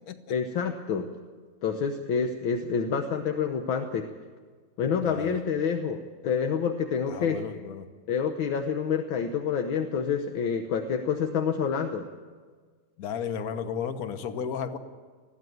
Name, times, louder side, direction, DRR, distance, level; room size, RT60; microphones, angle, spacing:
voice 1, 0.3-1.1 1.6-4.1 4.8-7.4 8.1-12.0, left 6 dB, 75° left, 6 dB, 1.8 m, -28 dB
voice 2, 5.0-5.4 7.1-7.9 13.0-14.8, left 7 dB, 50° left, 10 dB, 1.5 m, -33 dB
21.0 x 15.0 x 9.3 m, 1.5 s
omnidirectional pair, 2.2 m